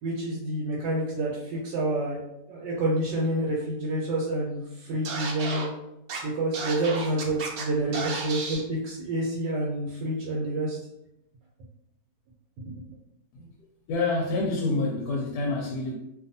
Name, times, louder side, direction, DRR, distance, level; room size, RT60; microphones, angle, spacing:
voice 1, 0.0-2.2 2.5-5.7 6.2-10.8 12.7-12.8, right 1 dB, 85° right, -3 dB, 1.3 m, -28 dB
Scratching (performance technique), 5.0-5.6 6.1-6.2 6.5-7.6 7.9-8.6, right 4 dB, 70° right, 0.9 m, -33 dB
voice 2, 13.9-16.0, left 3 dB, 70° left, -1 dB, 1.0 m, -28 dB
2.6 x 2.5 x 2.6 m, 0.84 s
omnidirectional pair, 1.9 m